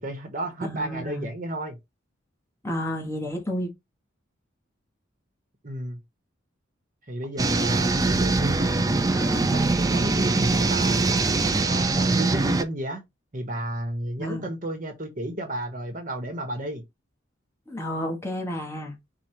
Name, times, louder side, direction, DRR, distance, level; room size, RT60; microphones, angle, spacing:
voice 1, 0.0-1.8 5.6-6.0 7.1-9.0 9.4-9.6 9.9-11.3 11.6-13.0 13.3-16.8, right 1 dB, 45° right, 1.1 m, -32 dB
voice 2, 0.6-1.3 2.6-3.7 9.1-9.5 14.2-14.5 17.7-19.0, equal, 15° left, 1.1 m, -31 dB
sound 1, 7.4-12.6, right 3 dB, 20° right, 0.4 m, -23 dB
4.8 x 2.4 x 4.4 m
head